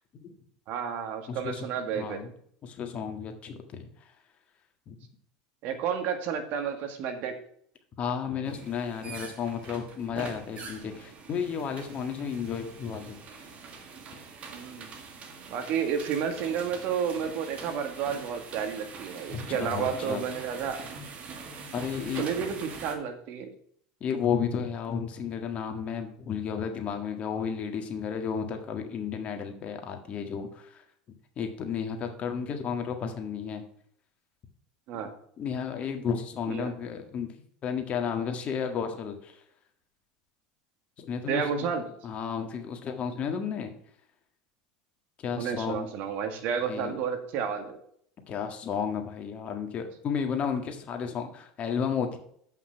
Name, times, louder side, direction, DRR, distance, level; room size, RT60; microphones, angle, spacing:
voice 1, 0.7-2.2 5.6-7.4 14.5-14.9 15.5-20.8 22.2-23.5 34.9-35.1 36.5-36.7 41.3-41.8 45.4-47.8, right 7 dB, 60° right, 7 dB, 1.7 m, -31 dB
voice 2, 1.3-2.3 2.6-3.9 4.9-5.0 8.0-13.2 19.3-20.2 21.7-22.4 24.0-30.5 30.7-30.8 31.4-33.6 35.4-37.3 37.6-39.3 41.0-41.7 42.0-43.7 45.2-45.9 46.7-47.0 48.3-52.2, left 7 dB, 40° left, 5 dB, 1.7 m, -32 dB
sound 1, 8.4-23.0, right 4 dB, 40° right, 1.9 m, -44 dB
7.8 x 5.8 x 5.7 m, 0.63 s
hypercardioid pair, 95°, 3 cm